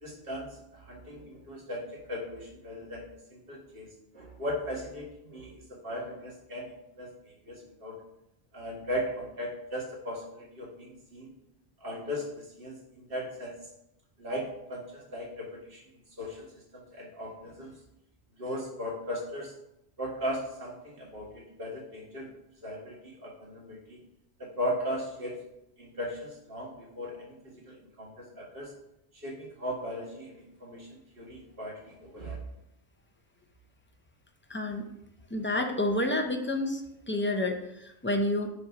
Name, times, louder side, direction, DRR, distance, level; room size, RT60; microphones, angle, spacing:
voice 1, 0.0-6.7 7.0-8.0 8.5-11.3 11.8-13.6 14.2-15.8 16.2-17.7 18.4-19.5 20.0-22.3 22.6-24.0 24.4-25.5 25.8-28.7 29.1-32.4, equal, 60° right, -3 dB, 2.0 m, -38 dB
voice 2, 34.5-34.9 35.3-38.5, left 1 dB, 15° left, 4 dB, 0.6 m, -29 dB
7.4 x 3.3 x 5.8 m, 0.84 s
omnidirectional pair, 1.1 m